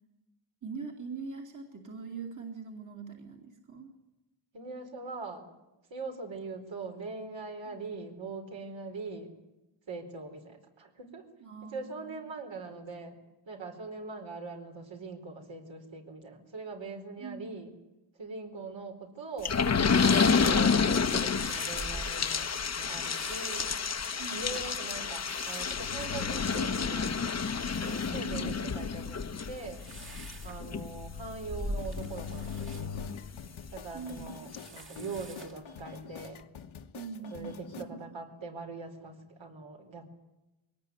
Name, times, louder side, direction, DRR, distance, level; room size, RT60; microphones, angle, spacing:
voice 1, 0.6-3.9 7.7-7.8 11.4-12.2 17.2-17.6 24.2-24.5 28.1-28.8 33.9-34.3 36.9-38.0, right 5 dB, 40° right, 1 dB, 2.9 m, -42 dB
voice 2, 4.5-5.5 5.9-9.3 9.9-11.2 11.6-13.2 13.5-17.7 18.2-19.6 20.1-22.5 22.8-23.7 24.3-27.4 27.8-29.8 30.4-33.2 33.7-36.4 37.3-40.0, right 3 dB, 70° right, 3 dB, 4.5 m, -42 dB
sound 1, 19.4-33.7 34.2-34.3 34.5-34.6, left 5 dB, 35° left, 1.0 m, -30 dB
sound 2, 19.5-36.4, right 1 dB, 25° right, 1.9 m, -47 dB
sound 3, 31.8-37.8, left 7 dB, 75° left, 1.5 m, -47 dB
22.5 x 18.5 x 9.6 m, 0.99 s
wide cardioid pair, 155°, 47 cm